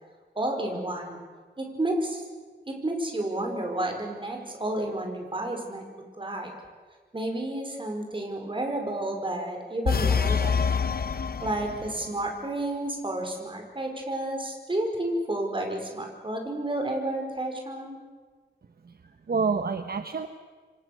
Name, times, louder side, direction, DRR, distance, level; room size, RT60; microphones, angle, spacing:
voice 1, 0.3-1.2 1.6-2.2 2.7-5.8 6.2-6.5 7.1-10.6 11.4-18.0, right 1 dB, 25° right, 3 dB, 5.1 m, -31 dB
sound 1, 9.8-12.1, left 6 dB, 50° left, 1.0 m, -26 dB
voice 2, 18.8-20.3, right 5 dB, 55° right, 8 dB, 1.1 m, -28 dB
27.5 x 25.0 x 6.7 m, 1.5 s
wide cardioid pair, 140°, 19 cm